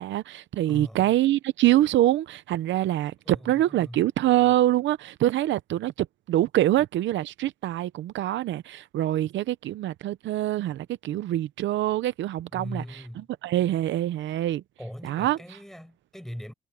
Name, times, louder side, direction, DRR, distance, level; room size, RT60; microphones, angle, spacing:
voice 1, 0.0-12.8 13.4-14.6 15.0-15.4, right 14 dB, 85° right, 0.6 m, -25 dB
voice 2, 0.7-1.1 3.3-4.0 12.5-13.3 14.8-16.5, equal, ahead, 7.4 m, -40 dB
cardioid pair, 90°, 19 cm